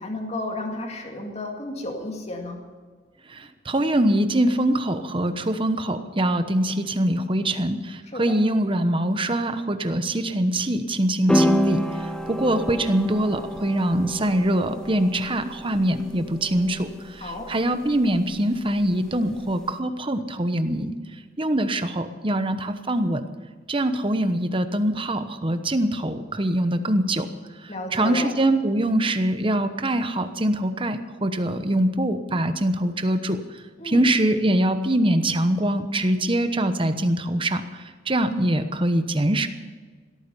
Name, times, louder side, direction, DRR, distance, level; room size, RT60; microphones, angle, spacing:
voice 1, 0.0-2.6 8.1-8.4 17.2-17.5 27.7-28.3 33.8-34.1, left 1 dB, 35° left, 2 dB, 2.2 m, -32 dB
voice 2, 3.3-21.0 21.4-23.3 23.7-27.3 27.6-33.4 33.8-39.5, right 1 dB, 30° right, 9 dB, 1.0 m, -23 dB
sound 1, 11.3-19.7, equal, 5° left, 0.8 m, -30 dB
17.0 x 13.5 x 5.6 m, 1.5 s
head